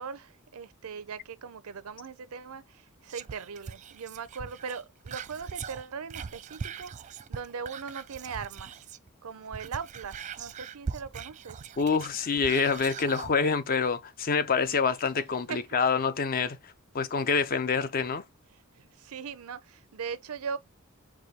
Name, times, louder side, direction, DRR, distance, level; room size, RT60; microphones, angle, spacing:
voice 1, 0.0-6.9 7.3-8.8 9.2-11.6 15.5-15.6 18.8-20.6, right 6 dB, 80° right, 0.6 m, -39 dB
Whispering, 3.1-9.1 9.4-13.3 13.8-13.9, right 6 dB, 35° right, 0.3 m, -41 dB
voice 2, 11.8-18.2, left 5 dB, 40° left, 0.5 m, -27 dB
4.9 x 2.3 x 4.1 m
head